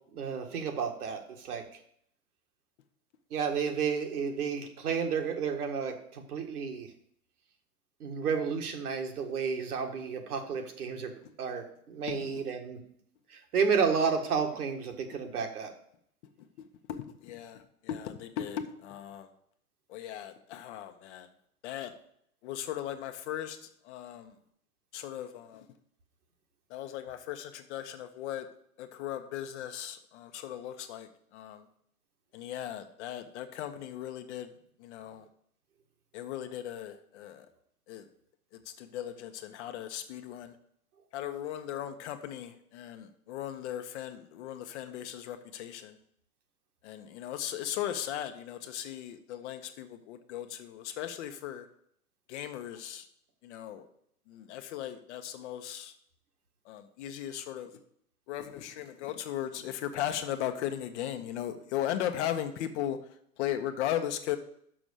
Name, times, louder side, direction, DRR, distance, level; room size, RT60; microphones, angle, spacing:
voice 1, 0.1-1.6 3.3-6.9 8.0-11.1 11.4-12.8 13.3-15.7, right 6 dB, 70° right, 3 dB, 1.7 m, -31 dB
voice 2, 12.1-12.4 15.1-15.3 16.6-19.3 19.9-21.3 21.6-21.9 22.4-23.6 23.8-24.3 24.9-25.7 26.7-28.5 28.8-31.6 32.3-34.5 34.8-35.2 36.1-37.5 37.9-38.0 38.5-40.5 41.1-46.0 46.8-51.7 52.3-53.1 53.4-53.9 54.3-55.9 56.7-57.7 58.3-63.0 63.4-64.4, left 11 dB, 45° left, 8 dB, 1.0 m, -37 dB
6.1 x 6.1 x 6.8 m, 0.68 s
hypercardioid pair, 110°, 46 cm